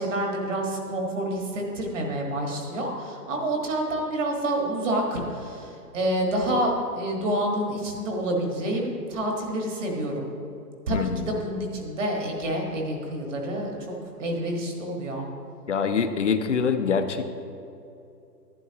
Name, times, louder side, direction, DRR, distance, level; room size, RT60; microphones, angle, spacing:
voice 1, 0.0-10.3 10.9-15.3, right 1 dB, 50° right, 0 dB, 1.7 m, -28 dB
voice 2, 10.9-11.3 15.7-17.4, left 6 dB, 50° left, 9 dB, 0.5 m, -25 dB
11.5 x 9.7 x 2.9 m, 2.7 s
hypercardioid pair, 175°, 48 cm